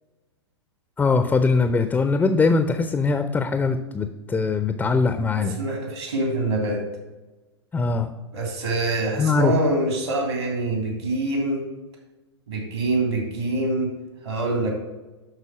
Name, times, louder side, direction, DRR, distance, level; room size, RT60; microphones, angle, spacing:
voice 1, 1.0-5.6 7.7-8.1 9.2-9.5, left 4 dB, 10° left, 9 dB, 0.6 m, -21 dB
voice 2, 5.3-6.8 8.3-11.7 12.5-14.7, right 2 dB, 70° right, 1 dB, 3.3 m, -25 dB
11.5 x 4.1 x 6.1 m, 1.1 s
figure-of-eight pair, 105°, 14 cm